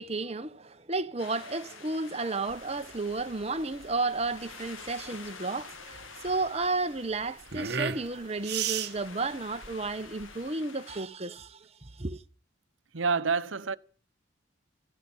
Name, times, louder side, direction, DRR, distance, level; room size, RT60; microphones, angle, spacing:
voice 1, 0.0-12.2, right 3 dB, 30° right, 1.1 m, -33 dB
sound 1, 1.2-11.0, left 5 dB, 80° left, 1.9 m, -49 dB
sound 2, 2.5-10.5, right 7 dB, 55° right, 1.3 m, -37 dB
voice 2, 12.9-13.8, right 5 dB, 75° right, 0.9 m, -27 dB
16.0 x 12.5 x 7.1 m
head